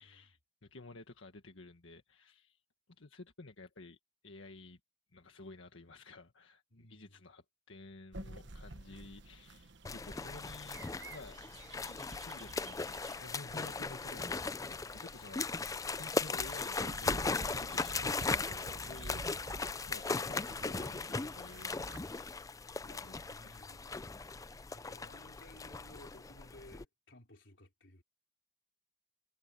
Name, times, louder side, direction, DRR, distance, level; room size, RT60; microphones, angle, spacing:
voice 1, 0.0-2.6 3.0-4.0 4.2-4.8 5.1-11.4 11.9-24.7, left 2 dB, 90° left, 1.6 m, -53 dB
voice 2, 6.7-7.2 15.5-15.9 22.8-23.9 24.7-28.0, left 1 dB, 70° left, 4.3 m, -58 dB
sound 1, 8.1-22.0, right 2 dB, 65° right, 1.4 m, -50 dB
sound 2, 9.8-26.8, left 4 dB, 15° left, 0.4 m, -38 dB
head